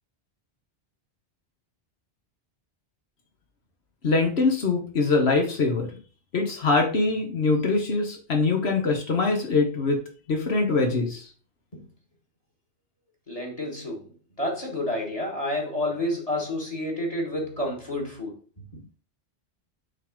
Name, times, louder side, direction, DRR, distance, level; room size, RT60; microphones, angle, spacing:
voice 1, 4.0-5.9 6.3-10.0 10.3-11.2, left 3 dB, 70° left, 1.4 m, -23 dB
voice 2, 13.3-14.1 14.4-18.3 18.7-18.8, left 1 dB, 30° left, 1.8 m, -29 dB
6.3 x 3.5 x 5.2 m
omnidirectional pair, 1.1 m